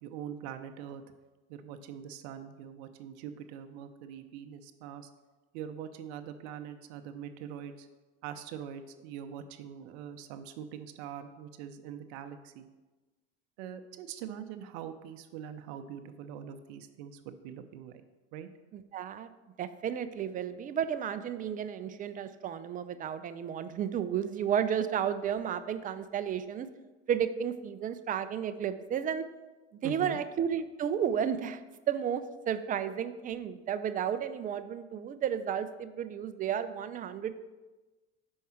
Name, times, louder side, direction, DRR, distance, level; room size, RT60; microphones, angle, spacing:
voice 1, 0.0-1.0 1.5-5.1 5.5-7.9 8.2-12.7 13.6-18.0 18.3-18.5 29.8-30.2, right 9 dB, 70° right, 8 dB, 0.6 m, -43 dB
voice 2, 18.7-19.3 19.6-26.7 27.1-29.3 29.8-37.3, right 8 dB, 25° right, 12 dB, 0.4 m, -32 dB
5.3 x 4.6 x 5.7 m, 1.2 s
supercardioid pair, 100°, 34 cm